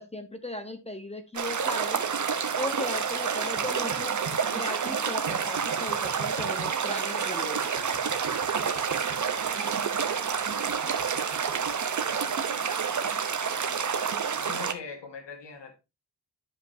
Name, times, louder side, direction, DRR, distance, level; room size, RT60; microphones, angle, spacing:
voice 1, 0.0-2.0 2.6-4.2 4.5-7.7, left 1 dB, 15° left, 1.0 m, -37 dB
sound 1, 1.3-14.7, right 6 dB, 45° right, 0.9 m, -29 dB
sound 2, 3.6-4.4 5.3-6.7 7.8-9.2 10.7-11.7, right 4 dB, 65° right, 1.5 m, -43 dB
voice 2, 12.0-12.6 14.3-15.8, left 5 dB, 80° left, 1.8 m, -43 dB
12.5 x 5.2 x 2.7 m
wide cardioid pair, 150°, 42 cm